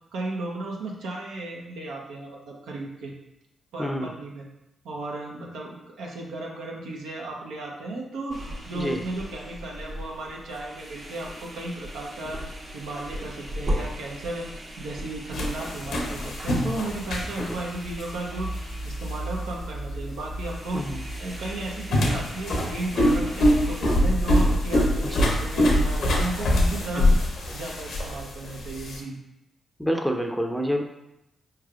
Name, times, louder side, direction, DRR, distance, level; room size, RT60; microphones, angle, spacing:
voice 1, 0.1-3.1 3.7-4.5 4.8-12.4 12.7-14.5 14.8-20.8 21.2-27.1 27.5-29.2, right 2 dB, 80° right, -2 dB, 0.7 m, -34 dB
voice 2, 3.8-4.1 8.7-9.0 17.4-17.6 20.7-21.0 25.0-25.3 26.9-27.1 29.8-30.8, equal, ahead, 3 dB, 0.6 m, -28 dB
sound 1, 8.3-23.8, equal, 55° right, 1.1 m, -38 dB
sound 2, 15.3-29.0, left 1 dB, 70° left, 0.7 m, -25 dB
4.5 x 3.2 x 2.4 m, 0.88 s
hypercardioid pair, 40°, 0 cm